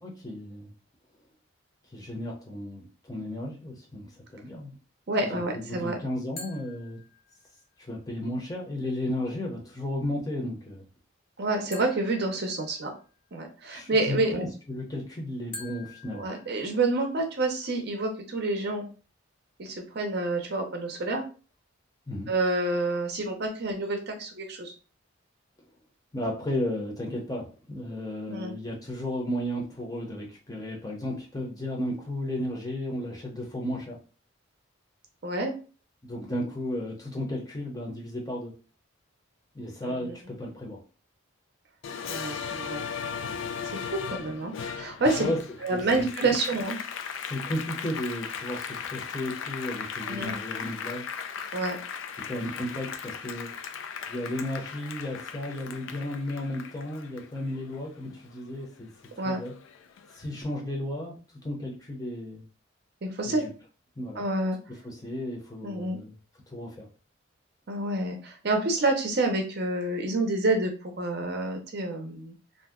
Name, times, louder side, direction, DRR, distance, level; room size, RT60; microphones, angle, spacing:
voice 1, 0.0-0.7 1.9-4.7 5.2-7.0 7.8-10.8 13.7-16.3 22.1-22.3 26.1-34.0 36.0-38.5 39.5-40.8 45.2-45.4 45.7-46.1 47.2-51.1 52.3-53.5 54.1-58.9 59.2-59.5 60.1-61.2 61.4-62.4 63.2-63.5 64.0-64.2 64.8-66.1 66.5-66.9, left 1 dB, 20° left, -1 dB, 0.7 m, -34 dB
voice 2, 5.1-6.0 11.4-12.9 13.3-14.4 16.1-18.8 19.6-21.2 22.3-24.7 28.3-28.5 35.2-35.5 39.8-40.1 42.1-42.8 43.6-45.3 45.6-46.8 50.1-50.3 51.5-51.8 59.2-59.4 63.0-63.4 64.2-64.6 65.6-66.0 67.7-70.7 71.0-72.3, right 2 dB, 55° right, 3 dB, 0.6 m, -28 dB
sound 1, 6.4-7.7 11.7-13.2 15.5-17.2, left 3 dB, 50° left, 0.8 m, -46 dB
Applause, 41.8-58.6 59.0-60.2, left 7 dB, 70° left, 0.3 m, -37 dB
2.6 x 2.1 x 3.5 m, 0.36 s
head